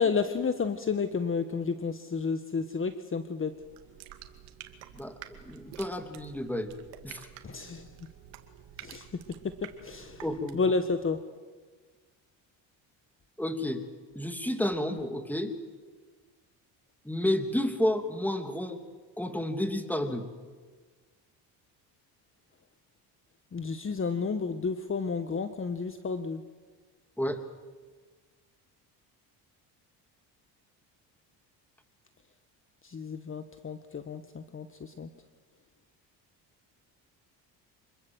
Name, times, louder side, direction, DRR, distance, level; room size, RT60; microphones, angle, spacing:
voice 1, 0.0-3.5 7.4-7.9 8.8-10.2 10.5-11.2 23.5-26.4 32.8-35.1, left 5 dB, 30° left, 9 dB, 1.5 m, -31 dB
sound 1, 3.5-10.8, right 11 dB, 85° right, 2.4 m, -50 dB
voice 2, 4.9-6.7 7.0-7.3 10.2-10.6 13.4-13.8 14.1-15.5 17.0-18.8 19.2-20.3 27.2-27.4, left 1 dB, 5° left, 7 dB, 2.9 m, -31 dB
26.5 x 21.5 x 8.0 m, 1.5 s
supercardioid pair, 80°, 42 cm